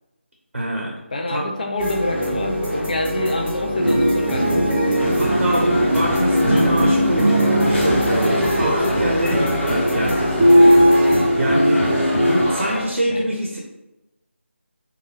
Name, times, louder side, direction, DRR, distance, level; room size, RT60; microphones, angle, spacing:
voice 1, 0.5-0.9 1.3-1.5 5.2-10.6 11.4-11.9 12.2-13.6, right 1 dB, 65° right, -2 dB, 0.6 m, -24 dB
voice 2, 1.1-4.7 13.1-13.4, left 1 dB, 40° left, 2 dB, 0.3 m, -26 dB
sound 1, 1.8-11.2, equal, 5° left, 1.1 m, -24 dB
sound 2, 3.8-12.5, equal, 25° right, 0.8 m, -19 dB
sound 3, 5.0-12.8, equal, 70° left, 0.9 m, -28 dB
2.6 x 2.3 x 3.2 m, 0.97 s
figure-of-eight pair, 160°, 7 cm